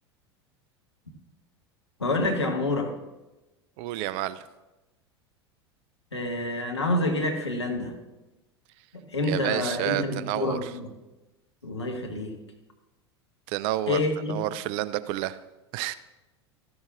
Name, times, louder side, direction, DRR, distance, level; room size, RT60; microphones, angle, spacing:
voice 1, 2.0-3.0 6.1-7.9 8.9-10.9 11.6-12.3 13.9-14.4, left 2 dB, 85° left, 2 dB, 1.3 m, -28 dB
voice 2, 3.8-4.5 9.2-10.7 13.5-14.0 14.3-15.4 15.7-16.0, right 14 dB, 45° right, 16 dB, 0.4 m, -29 dB
13.0 x 11.0 x 2.5 m, 1.0 s
figure-of-eight pair, 80°, 14 cm